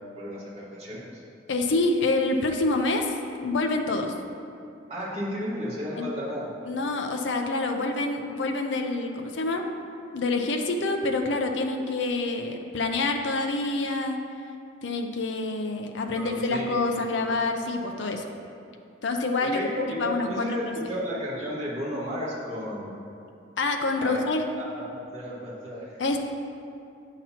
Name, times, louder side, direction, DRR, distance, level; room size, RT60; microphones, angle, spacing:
voice 1, 0.1-1.2 4.9-6.5 16.1-17.0 19.4-23.0 24.0-24.2 24.6-25.9, equal, 35° right, -8 dB, 1.7 m, -33 dB
voice 2, 1.5-3.1 3.4-4.1 6.0-6.1 6.7-9.6 10.1-14.2 14.8-18.3 19.0-20.6 23.6-24.4 26.0-26.2, left 2 dB, 80° left, 4 dB, 0.5 m, -27 dB
9.1 x 5.8 x 2.9 m, 2.5 s
head